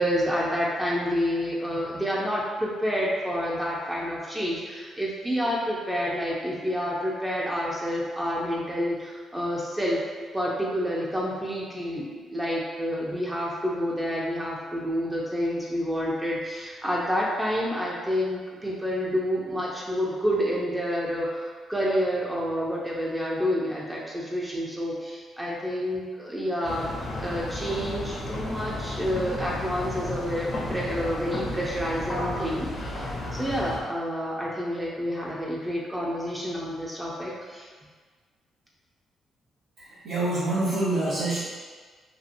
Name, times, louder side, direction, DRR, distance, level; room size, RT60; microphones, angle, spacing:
voice 1, 0.0-10.0 10.3-26.9 27.1-37.7, equal, 15° right, -4 dB, 0.5 m, -29 dB
sound 1, 26.6-33.8, left 1 dB, 40° left, 0.5 m, -33 dB
voice 2, 39.8-41.4, right 2 dB, 85° right, -11 dB, 0.6 m, -26 dB
2.7 x 2.5 x 2.5 m, 1.5 s
cardioid pair, 90°, 0 cm